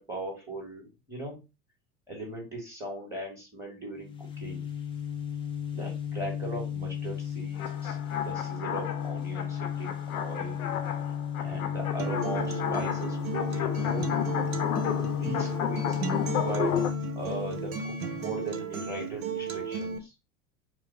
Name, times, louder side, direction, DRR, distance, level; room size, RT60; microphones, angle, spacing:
voice 1, 0.0-1.4 2.1-4.6 5.7-10.7 11.4-14.1 14.9-16.0 16.4-16.8 17.2-20.1, right 1 dB, 5° right, -1 dB, 1.9 m, -39 dB
sound 1, 4.0-18.5, left 9 dB, 10° left, 0.4 m, -34 dB
sound 2, 7.6-16.9, left 10 dB, 65° left, 0.7 m, -33 dB
Acoustic guitar, 12.0-20.0, right 6 dB, 65° right, 0.8 m, -35 dB
4.6 x 2.0 x 3.3 m, 0.27 s
figure-of-eight pair, 80°, 46 cm